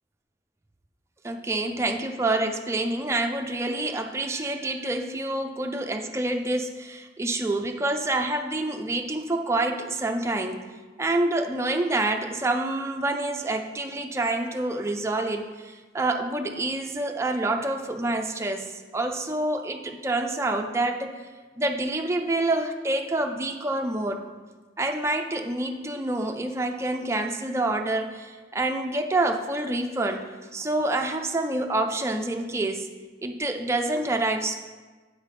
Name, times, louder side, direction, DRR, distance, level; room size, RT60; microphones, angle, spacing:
voice 1, 1.2-10.6 11.0-21.1 21.6-24.2 24.8-30.3 30.5-32.9 33.2-34.6, right 2 dB, 15° right, 4 dB, 0.4 m, -27 dB
8.3 x 5.7 x 3.2 m, 1.3 s
head